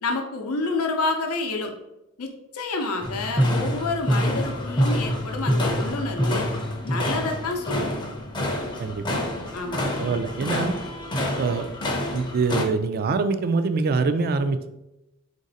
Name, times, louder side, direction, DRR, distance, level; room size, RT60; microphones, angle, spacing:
voice 1, 0.0-1.7 2.2-6.5 6.8-7.9 9.5-10.2, left 3 dB, 85° left, 4 dB, 0.6 m, -29 dB
sound 1, 3.0-12.6, equal, 20° left, 0.5 m, -26 dB
voice 2, 8.8-9.2 10.0-10.7 11.4-11.7 12.1-14.7, right 4 dB, 45° right, 10 dB, 0.3 m, -24 dB
4.0 x 2.6 x 3.9 m, 0.92 s
head